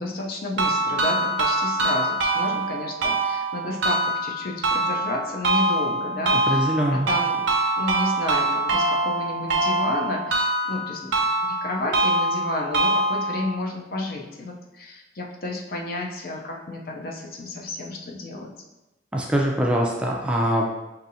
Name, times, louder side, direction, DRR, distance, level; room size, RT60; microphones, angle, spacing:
voice 1, 0.0-7.5 7.8-11.1 11.4-18.5, left 2 dB, 55° left, 0 dB, 0.6 m, -31 dB
sound 1, 0.6-13.5, right 2 dB, 90° right, 0.7 m, -24 dB
voice 2, 6.5-7.1 19.1-20.7, right 1 dB, 5° right, -2 dB, 0.4 m, -23 dB
5.4 x 2.7 x 2.6 m, 0.99 s
head